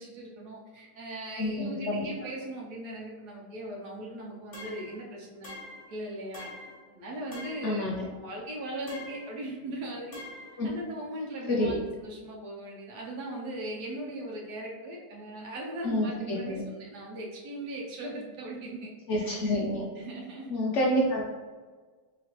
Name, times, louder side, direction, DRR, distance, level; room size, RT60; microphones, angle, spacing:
voice 1, 0.0-5.5 5.9-6.5 6.9-10.2 10.6-19.6 20.0-20.5, right 1 dB, 70° right, -2 dB, 1.2 m, -39 dB
voice 2, 1.4-2.0 7.6-8.0 10.6-10.7 11.5-11.7 15.8-16.6 19.1-19.8 20.5-21.2, left 1 dB, 85° left, -2 dB, 0.6 m, -28 dB
sound 1, 4.5-5.0 5.4-5.9 6.3-6.8 7.3-7.8 8.9-9.3 10.1-10.6, left 2 dB, 35° left, 0.6 m, -44 dB
3.9 x 3.2 x 2.9 m, 1.4 s
omnidirectional pair, 1.9 m